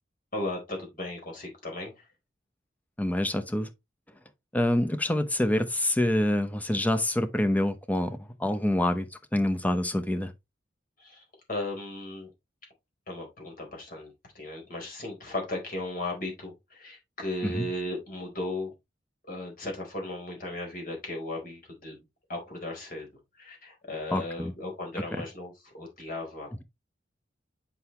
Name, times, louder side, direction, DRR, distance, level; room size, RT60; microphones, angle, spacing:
voice 1, 0.3-2.0 11.0-11.2 11.5-12.3 13.1-18.7 19.2-22.0 22.3-23.1 23.4-26.6, left 1 dB, 50° left, 4.2 m, -36 dB
voice 2, 3.0-3.7 4.5-10.3 17.4-17.6 24.1-24.5, left 1 dB, 10° left, 0.8 m, -26 dB
7.8 x 5.8 x 3.2 m
head